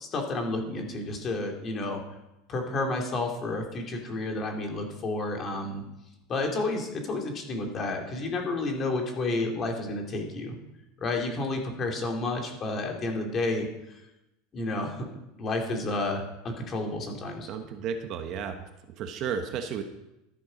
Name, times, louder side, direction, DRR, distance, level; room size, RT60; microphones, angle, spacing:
voice 1, 0.0-2.0 2.5-5.8 6.3-10.5 11.0-14.0 14.5-15.1 15.4-17.5, left 2 dB, 25° left, 2 dB, 2.6 m, -31 dB
voice 2, 17.5-18.6 18.9-19.8, right 7 dB, 40° right, 7 dB, 1.2 m, -33 dB
13.0 x 11.5 x 5.2 m, 0.91 s
supercardioid pair, 155°, 0 cm